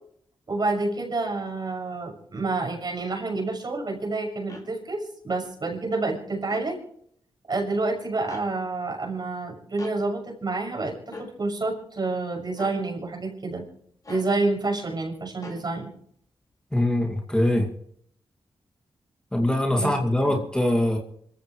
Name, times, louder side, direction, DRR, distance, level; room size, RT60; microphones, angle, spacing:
voice 1, 0.5-6.8 7.5-13.7 14.1-15.9 19.7-19.9 20.3-20.4, right 3 dB, 45° right, 1 dB, 6.4 m, -28 dB
sound 1, 4.5-4.7 6.4-6.7 8.3-8.5 9.8-10.0 11.1-11.3 12.5-12.8 14.0-14.3 15.4-15.6, left 2 dB, 35° left, 5.3 m, -41 dB
voice 2, 16.7-17.7 19.3-21.0, left 1 dB, 10° left, 1 dB, 2.4 m, -23 dB
26.0 x 15.0 x 3.2 m, 0.67 s
cardioid pair, 70°, 10 cm